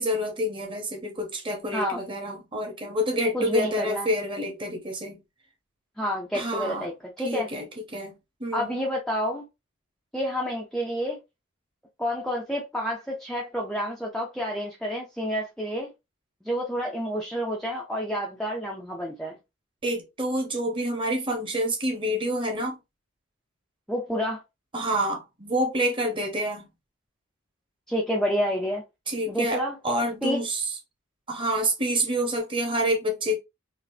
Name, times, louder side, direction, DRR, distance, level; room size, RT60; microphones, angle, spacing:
voice 1, 0.0-5.2 6.3-6.9 7.2-7.6 7.9-8.1 8.4-8.7 19.8-22.8 24.7-26.7 29.1-30.7 31.3-33.4, equal, 20° right, 0.9 m, -27 dB
voice 2, 3.3-4.1 6.0-7.5 8.5-9.4 10.1-11.2 12.0-15.9 16.4-19.4 23.9-24.4 27.9-28.8 29.3-29.8 30.2-30.4, equal, ahead, 0.5 m, -29 dB
4.0 x 2.5 x 2.7 m
head